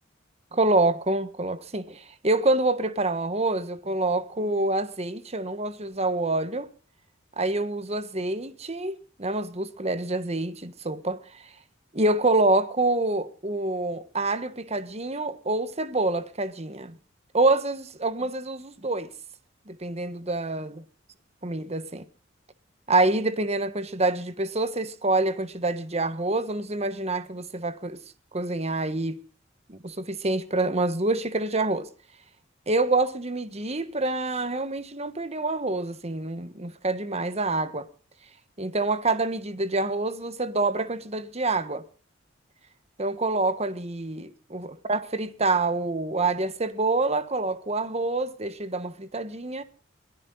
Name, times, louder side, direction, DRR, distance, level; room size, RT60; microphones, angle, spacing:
voice 1, 0.5-6.7 7.4-11.2 11.9-17.0 17.3-19.1 19.7-20.8 21.4-22.0 22.9-28.0 28.3-29.2 29.7-31.9 32.7-37.9 38.6-41.8 43.0-49.6, right 2 dB, 35° right, 1.4 m, -26 dB
22.5 x 15.0 x 4.0 m
head